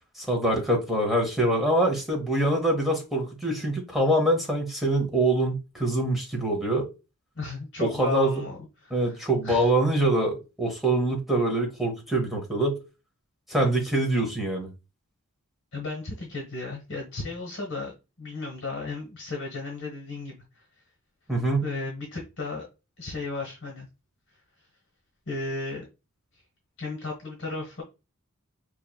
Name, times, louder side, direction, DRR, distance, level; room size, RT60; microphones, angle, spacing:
voice 1, 0.2-6.9 7.8-8.4 8.9-12.8 13.5-14.7 21.3-21.7, right 1 dB, ahead, 1.0 m, -24 dB
voice 2, 7.4-9.7 15.7-20.7 21.6-22.7 23.0-23.9 25.3-25.9 26.3-26.4 26.8-27.8, left 3 dB, 60° left, 1.1 m, -35 dB
5.5 x 3.0 x 2.3 m
head